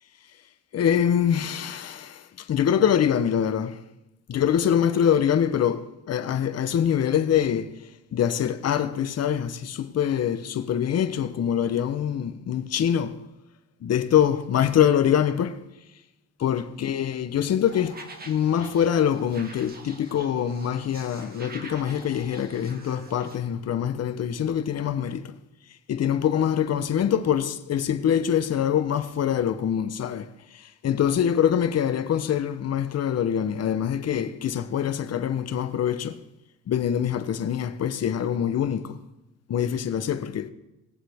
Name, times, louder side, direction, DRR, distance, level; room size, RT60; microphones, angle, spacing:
voice 1, 0.7-3.8 4.3-7.8 8.1-13.3 13.8-15.6 16.4-25.3 25.9-36.2 36.7-39.0 39.5-40.5, left 9 dB, 55° left, 1.0 m, -24 dB
sound 1, 17.7-23.4, right 2 dB, 30° right, 1.8 m, -45 dB
19.5 x 7.4 x 3.6 m
cardioid pair, 90°, 30 cm